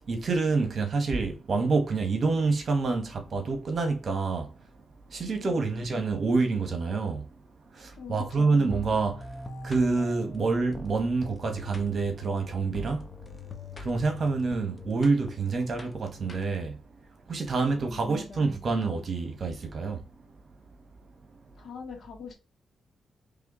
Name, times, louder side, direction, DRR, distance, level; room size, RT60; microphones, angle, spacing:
voice 1, 0.1-4.5 5.1-7.3 7.7-9.3 9.6-13.1 13.8-16.8 17.3-20.1, right 4 dB, 50° right, 1.5 m, -27 dB
voice 2, 5.4-5.9 8.0-8.6 17.6-18.5 21.6-22.3, left 5 dB, 60° left, 2.1 m, -43 dB
sound 1, 8.7-16.8, left 2 dB, 25° left, 1.1 m, -43 dB
4.8 x 3.4 x 3.1 m
cardioid pair, 95°, 0 cm